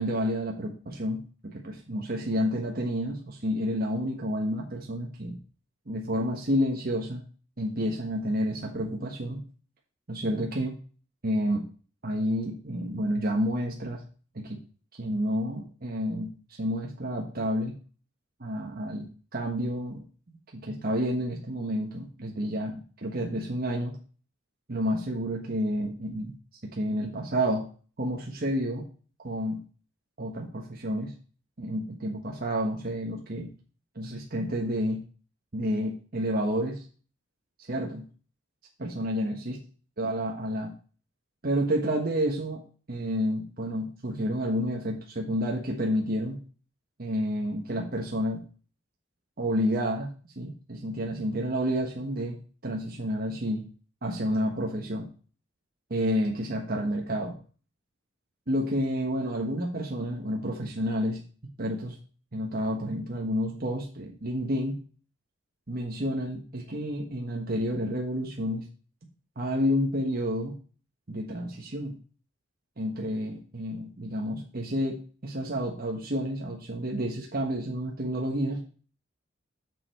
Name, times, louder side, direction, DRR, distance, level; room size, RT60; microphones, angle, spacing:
voice 1, 0.0-5.4 5.9-7.2 7.6-9.4 10.1-10.7 11.2-11.6 12.0-14.0 14.3-14.6 14.9-16.3 16.6-17.7 18.4-20.0 20.5-24.0 24.7-26.3 26.6-27.6 28.0-28.8 29.2-29.6 30.2-31.1 31.6-33.5 33.9-35.0 35.5-36.8 37.6-38.0 38.8-39.6 40.0-40.7 41.4-42.6 42.9-46.4 47.0-48.4 49.4-50.1 50.4-52.4 52.6-53.6 54.0-55.1 55.9-57.3 58.5-61.2 61.6-62.0 62.3-64.8 65.7-68.7 69.4-70.5 71.1-72.0 72.8-78.6, equal, 50° right, 0 dB, 1.3 m, -30 dB
7.3 x 6.6 x 4.7 m, 0.40 s
head